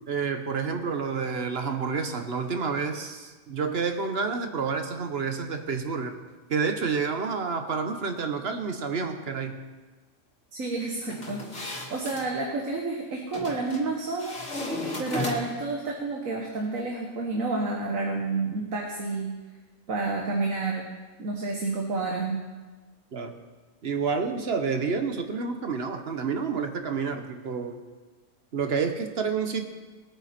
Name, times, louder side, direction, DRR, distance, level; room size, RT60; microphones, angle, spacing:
voice 1, 0.0-6.2 6.5-9.6 23.1-23.4 23.8-27.8 28.5-29.7, right 5 dB, 50° right, 6 dB, 1.3 m, -29 dB
voice 2, 10.5-14.4 15.0-19.3 19.9-20.8 21.2-22.4, right 3 dB, 75° right, 0 dB, 1.8 m, -30 dB
sound 1, 11.1-12.3 13.3-13.8 14.2-15.7, left 1 dB, 50° left, 2.4 m, -34 dB
21.0 x 9.0 x 4.4 m, 1.3 s
omnidirectional pair, 1.4 m